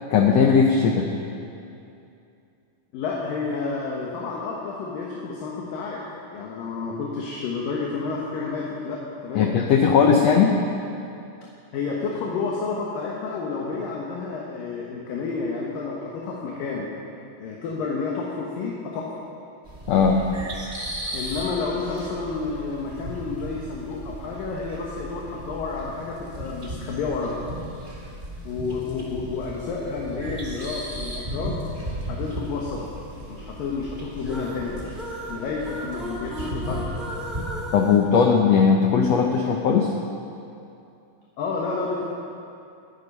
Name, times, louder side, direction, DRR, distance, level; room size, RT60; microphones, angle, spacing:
voice 1, 0.1-1.1 9.3-10.6 19.9-20.2 37.7-39.9, left 6 dB, 90° left, 2 dB, 1.4 m, -18 dB
voice 2, 2.9-6.1 6.3-9.5 11.7-16.9 17.4-19.1 21.1-27.4 28.4-31.6 32.1-32.9 33.3-34.9 35.3-36.9 41.4-42.1, left 4 dB, 70° left, -3 dB, 2.9 m, -30 dB
sound 1, 19.7-37.4, right 1 dB, 20° right, 1.5 m, -36 dB
sound 2, 34.2-39.0, equal, ahead, 1.4 m, -36 dB
19.5 x 10.5 x 5.5 m, 2.6 s
omnidirectional pair, 4.2 m